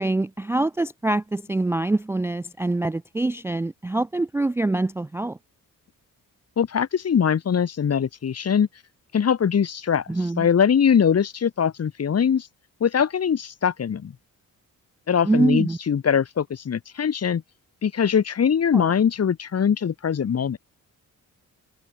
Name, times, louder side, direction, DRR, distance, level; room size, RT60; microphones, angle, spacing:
voice 1, 0.0-5.4 10.1-10.5 15.2-15.8 18.7-18.9, right 2 dB, 10° right, 0.4 m, -24 dB
voice 2, 6.6-8.7 9.1-10.1 10.4-12.5 12.8-14.1 15.1-17.4 17.8-20.6, left 7 dB, 50° left, 2.5 m, -22 dB
open air
cardioid pair, 115°, 33 cm